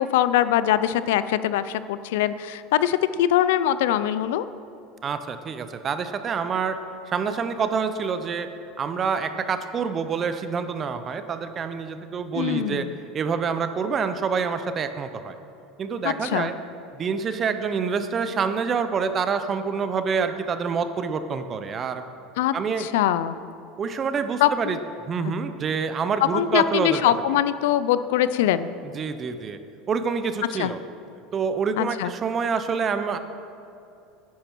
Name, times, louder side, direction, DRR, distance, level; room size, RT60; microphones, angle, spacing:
voice 1, 0.0-4.5 12.3-12.9 16.0-16.5 22.4-23.4 24.4-24.5 25.2-25.3 26.3-28.7 30.6-30.7 31.8-32.1, left 12 dB, 85° left, 14 dB, 0.4 m, -22 dB
voice 2, 5.0-6.8 7.1-8.5 8.8-12.9 13.1-15.3 15.8-16.5 17.0-22.0 22.5-22.9 23.8-24.8 25.1-27.0 28.9-29.6 29.9-30.8 31.3-33.2, right 5 dB, 30° right, 10 dB, 0.6 m, -27 dB
10.5 x 10.0 x 4.5 m, 2.7 s
supercardioid pair, 125°, 0 cm